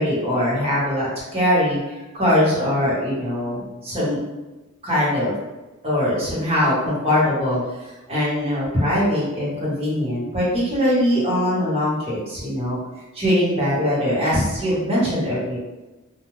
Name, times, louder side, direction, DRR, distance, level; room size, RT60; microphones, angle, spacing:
voice 1, 0.0-4.2 4.8-5.3 5.8-7.6 8.1-12.8 13.1-15.6, left 1 dB, 30° right, -8 dB, 1.0 m, -21 dB
2.4 x 2.1 x 3.1 m, 1.1 s
head